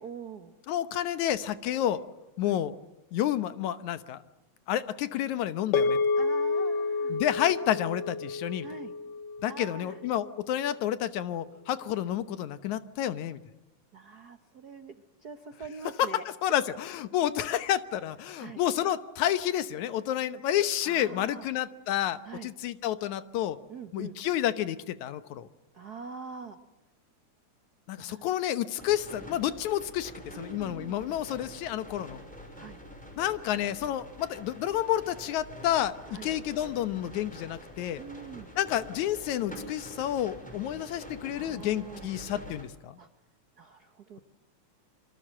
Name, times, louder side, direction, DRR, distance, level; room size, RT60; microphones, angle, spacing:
voice 1, 0.0-0.6 2.4-2.6 6.1-7.2 8.6-8.9 9.5-10.0 13.9-14.9 15.2-16.2 18.4-18.6 20.8-21.5 22.2-22.5 23.7-24.1 25.7-26.6 28.0-28.3 30.3-31.0 32.5-32.8 36.1-36.3 38.0-38.5 41.3-42.2 43.0-43.1 43.6-44.2, right 5 dB, 80° right, 9 dB, 0.8 m, -44 dB
voice 2, 0.7-2.0 2.4-2.7 3.1-4.2 4.7-6.0 7.1-8.7 9.4-13.4 16.0-16.1 16.4-23.6 23.9-25.5 27.9-32.2 33.2-36.0 36.2-38.0 38.6-43.0, left 11 dB, 70° left, 13 dB, 2.3 m, -30 dB
sound 1, 5.7-10.2, left 4 dB, 85° left, 3.0 m, -30 dB
sound 2, 28.8-42.6, equal, ahead, 6.1 m, -46 dB
27.0 x 24.0 x 7.5 m, 0.97 s
omnidirectional pair, 3.6 m